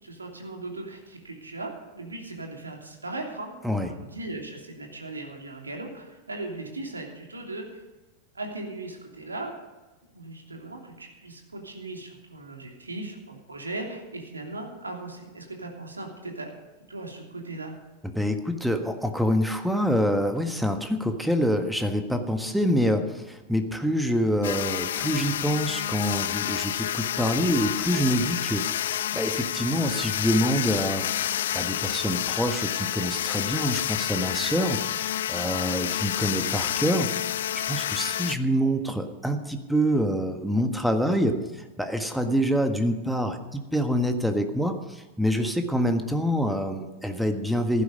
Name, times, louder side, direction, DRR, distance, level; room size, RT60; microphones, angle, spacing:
voice 1, 0.0-3.5 3.8-7.8 8.3-9.5 10.1-16.5 16.9-17.7, right 2 dB, 80° right, 2 dB, 3.0 m, -38 dB
voice 2, 18.0-37.1 37.7-47.8, equal, ahead, 6 dB, 1.6 m, -26 dB
sound 1, 24.4-38.4, left 11 dB, 60° left, 0.4 m, -29 dB
15.5 x 12.0 x 5.4 m, 1.1 s
figure-of-eight pair, 90°, 0 cm